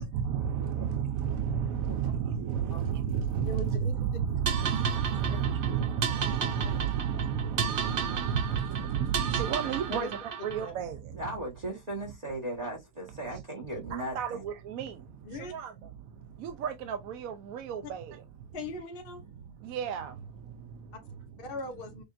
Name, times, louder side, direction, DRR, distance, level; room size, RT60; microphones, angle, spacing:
voice 1, 0.0-11.2 13.3-13.4 13.7-18.5 19.3-21.3, right 8 dB, 75° right, 1.0 m, -32 dB
sound 1, 2.7-8.2, equal, 25° left, 1.1 m, -52 dB
voice 2, 3.4-3.9 5.7-5.9 6.6-6.7 8.0-8.1 9.9-10.1 10.6-10.7 15.2-15.5 18.5-19.2 21.4-22.0, left 3 dB, 45° left, 0.9 m, -39 dB
sound 2, 4.5-10.7, right 7 dB, 55° right, 0.6 m, -34 dB
voice 3, 11.1-14.4, right 1 dB, 30° right, 1.2 m, -37 dB
6.6 x 2.6 x 2.4 m
omnidirectional pair, 1.6 m